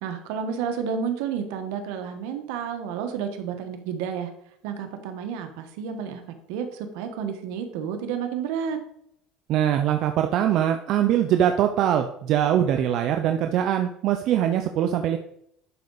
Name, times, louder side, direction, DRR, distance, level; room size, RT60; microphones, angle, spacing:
voice 1, 0.0-4.3 4.6-8.8, right 7 dB, 80° right, 6 dB, 1.4 m, -31 dB
voice 2, 9.5-15.2, right 10 dB, 55° right, 6 dB, 0.6 m, -22 dB
11.0 x 4.8 x 4.1 m, 0.72 s
cardioid pair, 120°, 0 cm